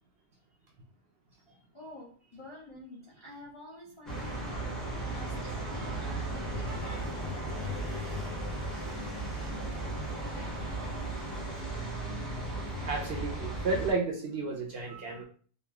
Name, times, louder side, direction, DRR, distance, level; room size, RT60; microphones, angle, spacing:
voice 1, 1.4-8.3, left 1 dB, 45° left, -6 dB, 0.4 m, -50 dB
sound 1, 4.1-13.9, right 1 dB, ahead, 0.6 m, -36 dB
voice 2, 5.6-5.9 6.6-7.0 12.4-12.5 12.9-15.2, right 3 dB, 65° right, 0 dB, 0.7 m, -33 dB
3.0 x 2.4 x 2.2 m, 0.44 s
omnidirectional pair, 1.3 m